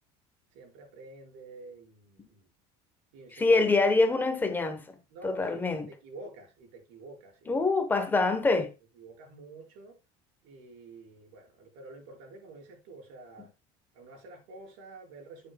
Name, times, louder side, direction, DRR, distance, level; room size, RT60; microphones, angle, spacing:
voice 1, 0.5-2.5 3.1-3.6 5.1-7.7 9.0-10.0 10.4-13.5 13.9-15.5, right 2 dB, 75° right, 5.0 m, -49 dB
voice 2, 3.3-4.8 5.2-5.9 7.5-8.7, left 3 dB, 15° left, 1.0 m, -25 dB
9.7 x 8.8 x 2.3 m
cardioid pair, 160°, 14 cm